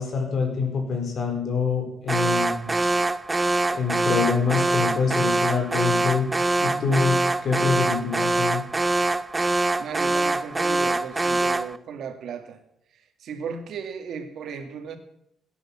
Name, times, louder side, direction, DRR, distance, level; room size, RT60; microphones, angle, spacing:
voice 1, 0.0-2.7 3.7-6.3 6.6-8.6, left 5 dB, 50° left, 3 dB, 4.8 m, -25 dB
Alarm, 2.1-11.8, right 2 dB, 20° right, 0.6 m, -24 dB
voice 2, 9.4-12.6 12.9-15.0, right 6 dB, 65° right, 7 dB, 2.2 m, -36 dB
17.5 x 10.0 x 7.5 m, 0.76 s
cardioid pair, 125°, 0 cm